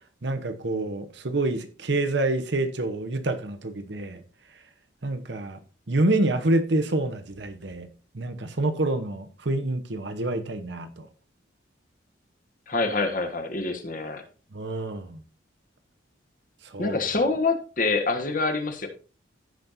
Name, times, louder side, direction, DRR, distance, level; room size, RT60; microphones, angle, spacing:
voice 1, 0.2-4.2 5.0-5.6 5.9-7.9 8.1-11.1 14.5-15.2 16.7-17.0, right 2 dB, 65° right, 1.0 m, -27 dB
voice 2, 12.7-14.2 16.8-18.9, left 3 dB, 45° left, 1.4 m, -26 dB
15.5 x 5.3 x 2.7 m
head